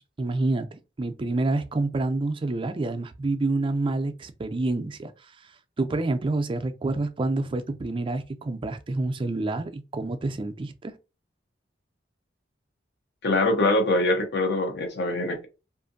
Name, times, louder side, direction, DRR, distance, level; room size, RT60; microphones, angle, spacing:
voice 1, 0.2-5.1 5.8-11.0, right 2 dB, 30° right, 0.4 m, -28 dB
voice 2, 13.2-15.5, left 2 dB, 65° left, 0.7 m, -23 dB
2.6 x 2.5 x 2.5 m
head